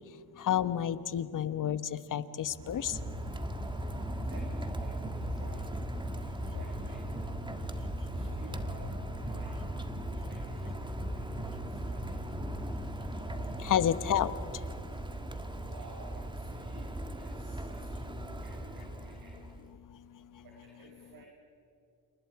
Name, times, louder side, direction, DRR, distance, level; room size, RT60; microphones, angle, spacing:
voice 1, 0.4-3.0 13.6-14.3, left 10 dB, 50° left, 13 dB, 1.2 m, -30 dB
Rain, 2.4-19.7, right 1 dB, 10° right, 1.6 m, -39 dB
sound 1, 2.9-14.4, equal, 30° right, 7.8 m, -41 dB
voice 2, 4.3-5.8 6.5-7.0 8.1-9.5 10.3-10.9 11.4-11.6 11.8-12.0 15.7-19.3 20.4-21.3, right 3 dB, 55° right, 0 dB, 5.3 m, -53 dB
29.0 x 28.5 x 4.8 m, 2.7 s
cardioid pair, 100°, 41 cm